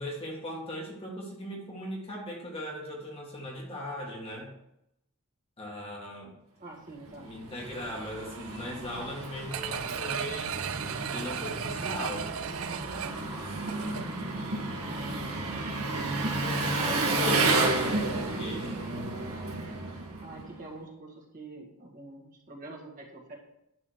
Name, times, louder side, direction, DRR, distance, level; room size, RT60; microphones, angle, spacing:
voice 1, 0.0-4.5 5.6-6.3 7.1-10.6 11.0-12.3 16.3-18.7, equal, 25° left, -1 dB, 1.9 m, -39 dB
voice 2, 6.6-7.3 16.8-18.0 20.2-23.3, right 2 dB, 40° right, -2 dB, 1.9 m, -45 dB
Engine, 7.1-20.6, right 2 dB, 90° right, 1.9 m, -31 dB
sound 1, 9.5-14.3 14.7-14.8, right 9 dB, 70° right, 0.4 m, -36 dB
11.0 x 4.1 x 6.4 m, 0.83 s
head